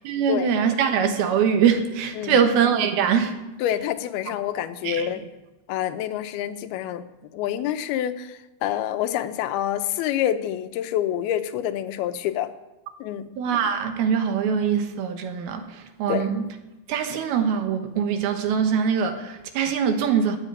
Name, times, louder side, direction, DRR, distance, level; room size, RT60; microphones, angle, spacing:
voice 1, 0.0-3.3 4.8-5.0 13.4-15.6 16.0-16.4 16.9-20.4, right 7 dB, 80° right, 3.2 m, -22 dB
voice 2, 2.1-2.5 3.6-5.3 5.7-7.0 7.3-12.5 13.0-13.3 16.1-16.3, left 11 dB, 85° left, 2.7 m, -27 dB
13.0 x 9.1 x 9.2 m
omnidirectional pair, 4.3 m